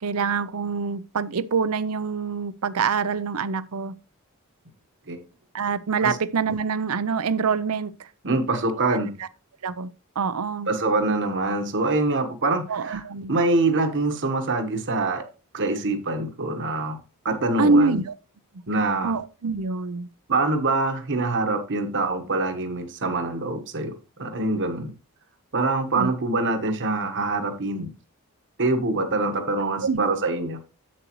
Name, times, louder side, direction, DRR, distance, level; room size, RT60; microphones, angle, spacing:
voice 1, 0.0-3.9 5.5-8.1 8.8-9.0 9.6-9.9 10.2-10.7 12.7-13.3 17.6-18.1 19.0-20.1 25.9-26.1 29.8-30.1, right 4 dB, 75° right, 0.6 m, -25 dB
voice 2, 8.2-9.2 10.7-15.3 15.5-17.0 17.2-18.0 18.7-19.2 20.3-24.9 25.5-27.9 28.6-30.6, right 2 dB, 55° right, 1.3 m, -25 dB
8.1 x 7.6 x 3.1 m
head